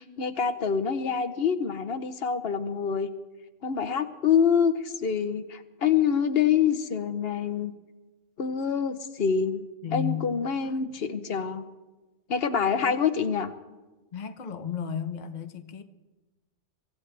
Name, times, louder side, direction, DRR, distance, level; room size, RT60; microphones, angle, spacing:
voice 1, 0.0-3.1 3.6-7.7 8.4-9.6 9.9-11.6 12.3-13.5, left 7 dB, 65° left, 1.1 m, -26 dB
voice 2, 9.8-11.1 12.8-13.0 14.1-15.8, left 8 dB, 45° left, 0.9 m, -34 dB
24.0 x 16.0 x 3.4 m
omnidirectional pair, 1.1 m